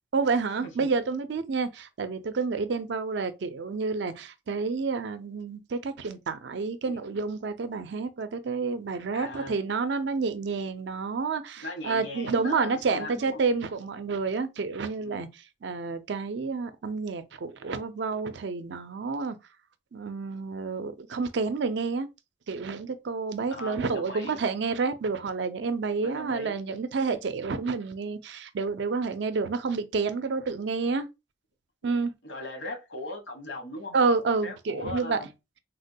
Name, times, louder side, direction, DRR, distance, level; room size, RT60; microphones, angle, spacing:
voice 1, 0.1-15.3 15.6-19.4 19.9-22.1 22.5-31.1 31.8-32.1 33.9-35.2, right 4 dB, 60° right, 0.4 m, -29 dB
voice 2, 9.1-9.6 11.6-13.4 15.0-15.2 23.5-24.4 26.0-26.5 32.2-34.0 34.4-35.3, left 1 dB, 70° left, 1.1 m, -38 dB
3.4 x 2.2 x 2.6 m
head